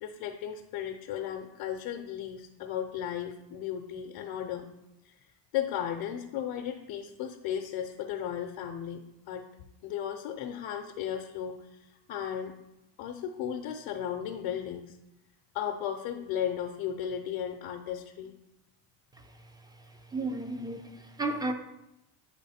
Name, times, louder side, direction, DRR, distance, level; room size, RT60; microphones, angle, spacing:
voice 1, 0.0-4.7 5.0-9.0 9.3-9.5 9.8-12.5 13.0-14.9 15.5-18.3, left 9 dB, 70° left, 4 dB, 0.7 m, -35 dB
voice 2, 20.1-21.5, right 2 dB, 10° right, 6 dB, 0.5 m, -33 dB
8.8 x 3.1 x 4.2 m, 0.91 s
cardioid pair, 110°, 47 cm